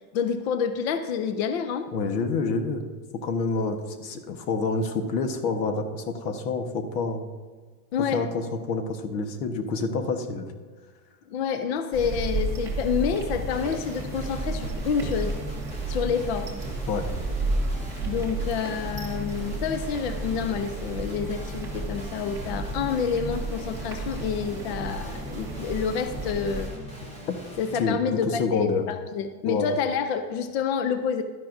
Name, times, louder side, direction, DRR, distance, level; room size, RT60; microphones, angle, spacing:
voice 1, 0.1-1.9 7.9-8.2 11.3-15.4 15.9-16.5 18.0-26.7 27.6-31.2, left 6 dB, 40° left, 9 dB, 0.4 m, -28 dB
voice 2, 1.9-2.9 3.2-7.2 8.1-10.5 16.9-17.1 27.8-28.0 28.3-28.8 29.4-29.8, left 4 dB, 75° left, 7 dB, 1.4 m, -28 dB
sound 1, 11.9-26.7, right 2 dB, 5° right, 1.3 m, -32 dB
Guitar, 13.5-27.8, equal, 15° left, 0.9 m, -42 dB
12.0 x 10.5 x 2.6 m, 1.4 s
supercardioid pair, 175°, 50 cm